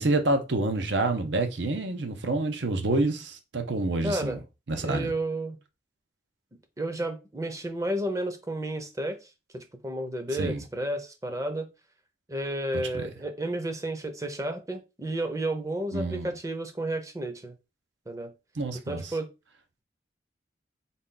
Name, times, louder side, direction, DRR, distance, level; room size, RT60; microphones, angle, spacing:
voice 1, 0.0-4.4 4.7-5.1 10.3-10.6 15.9-16.3 18.6-19.1, right 2 dB, 75° right, 0.8 m, -28 dB
voice 2, 4.0-4.4 4.8-5.6 6.8-9.2 9.5-11.7 12.3-17.5 18.1-18.3 18.9-19.3, right 1 dB, 15° right, 0.6 m, -32 dB
4.0 x 2.3 x 3.8 m
head